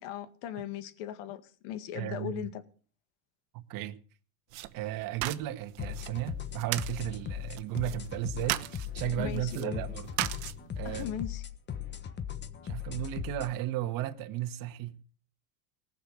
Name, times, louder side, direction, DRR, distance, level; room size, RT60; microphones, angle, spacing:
voice 1, 0.0-2.6 9.2-9.8 10.8-11.4, left 11 dB, 70° left, 1.9 m, -38 dB
voice 2, 1.9-2.5 3.5-4.0 4.7-10.1 10.8-11.0 12.6-15.0, right 13 dB, 50° right, 1.6 m, -35 dB
sound 1, 4.5-11.1, right 17 dB, 70° right, 1.2 m, -39 dB
sound 2, 5.8-13.5, left 9 dB, 25° left, 1.3 m, -38 dB
19.0 x 6.8 x 8.2 m
supercardioid pair, 135°, 41 cm